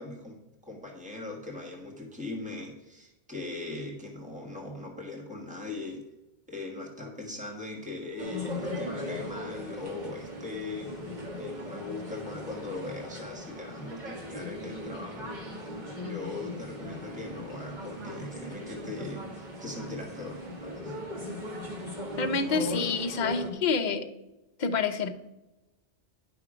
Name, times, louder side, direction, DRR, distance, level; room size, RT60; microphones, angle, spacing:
voice 1, 0.0-6.0 6.5-10.9 11.3-15.7 15.9-20.9, left 2 dB, 5° right, 0 dB, 1.5 m, -40 dB
sound 1, 8.2-23.5, left 1 dB, 45° right, 1.5 m, -38 dB
voice 2, 22.2-24.1 24.6-25.1, left 4 dB, 50° left, 5 dB, 0.8 m, -28 dB
10.5 x 5.9 x 4.9 m, 1.0 s
omnidirectional pair, 1.1 m